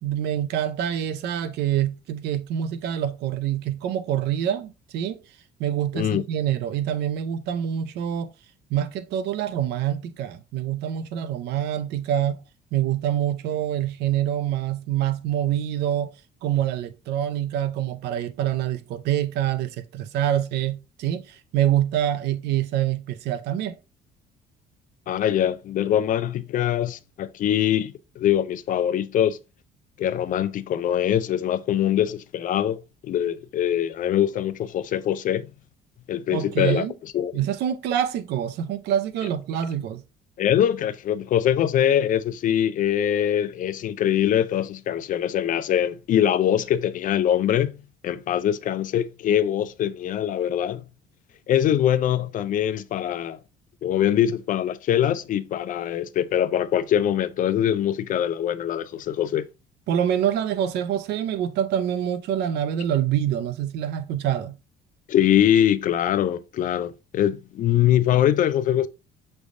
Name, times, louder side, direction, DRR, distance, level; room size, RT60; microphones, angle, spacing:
voice 1, 0.0-5.2 5.6-8.3 8.7-12.4 12.7-16.1 16.4-23.8 36.3-36.9 37.3-40.0 59.9-64.6, right 10 dB, 80° right, 0.6 m, -26 dB
voice 2, 25.1-29.4 30.0-35.5 36.1-37.3 40.4-47.8 48.0-50.8 51.5-53.4 53.8-59.5 65.1-68.9, left 10 dB, 50° left, 0.4 m, -23 dB
6.2 x 3.3 x 2.5 m
cardioid pair, 110°, 17 cm